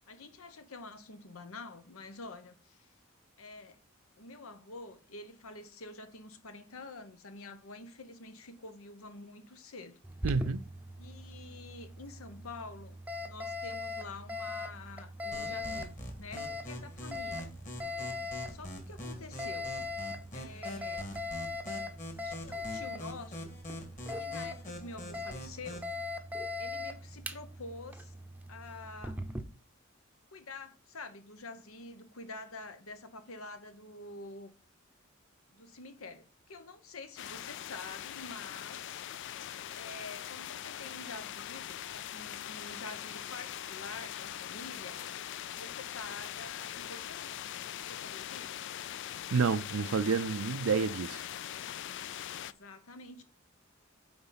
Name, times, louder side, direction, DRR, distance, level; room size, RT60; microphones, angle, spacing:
voice 1, 0.1-2.9 3.4-3.8 4.2-10.0 11.0-13.0 13.2-17.5 18.5-19.8 20.3-21.1 22.2-23.6 24.1-25.9 26.6-28.2 28.5-29.2 30.3-34.5 35.5-39.0 39.7-45.0 45.5-47.4 47.8-48.7 52.3-53.2, left 3 dB, 85° left, 1.0 m, -47 dB
Alarm, 10.0-29.4, left 2 dB, 10° right, 0.7 m, -41 dB
voice 2, 10.2-10.6 49.3-51.3, right 5 dB, 80° right, 0.5 m, -29 dB
sound 1, 15.3-25.9, equal, 35° left, 2.0 m, -44 dB
sound 2, 37.2-52.5, left 11 dB, 60° left, 0.4 m, -42 dB
9.6 x 4.0 x 4.0 m
head